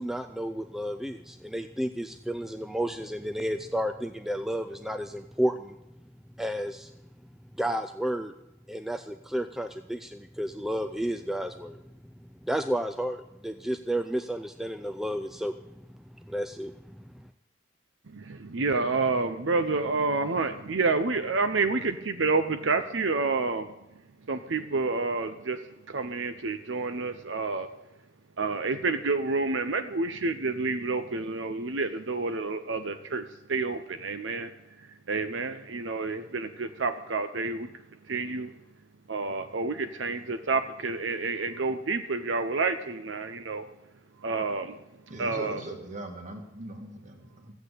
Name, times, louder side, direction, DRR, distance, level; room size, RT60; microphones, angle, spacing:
voice 1, 0.0-5.8 6.4-6.9 7.6-8.3 8.7-11.8 12.4-15.5 16.3-17.2, equal, ahead, 7 dB, 0.4 m, -32 dB
voice 2, 18.1-23.7 24.3-27.7 28.4-34.5 35.1-37.7 38.1-38.5 39.1-43.7 44.2-44.8 45.2-45.6, right 3 dB, 65° right, 9 dB, 0.7 m, -29 dB
voice 3, 45.1-47.5, right 1 dB, 35° right, 4 dB, 2.1 m, -40 dB
14.5 x 8.2 x 8.3 m, 0.91 s
head